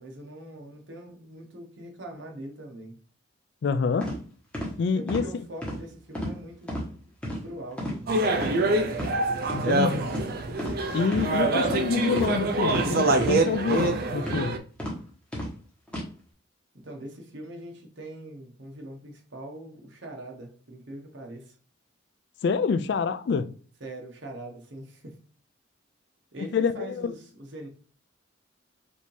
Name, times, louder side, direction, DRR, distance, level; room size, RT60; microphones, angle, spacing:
voice 1, 0.0-3.0 4.9-6.9 7.4-8.2 16.7-21.6 23.8-25.1 26.3-27.7, right 1 dB, 65° right, 1.1 m, -42 dB
voice 2, 3.6-4.1 4.8-5.2 9.5-10.1 10.9-14.6 22.4-23.5 26.5-27.1, left 5 dB, 55° left, 0.3 m, -27 dB
sound 1, 4.0-4.2 4.5-4.7 5.1-5.3 5.6-5.8 6.1-6.4 6.7-6.8 7.2-7.4 7.8-8.0 8.3-8.5 8.9-9.1 9.5-9.6 10.1-10.3 10.6-10.8 11.1-11.3 11.6-11.8 12.2-12.3 12.7-12.8 13.2-13.4 13.7-13.9 14.3-14.4 14.8-14.9 15.3-15.5 15.9-16.0, equal, 5° left, 1.2 m, -31 dB
sound 2, 8.1-14.6, right 2 dB, 50° right, 0.5 m, -25 dB
5.1 x 2.7 x 3.3 m
head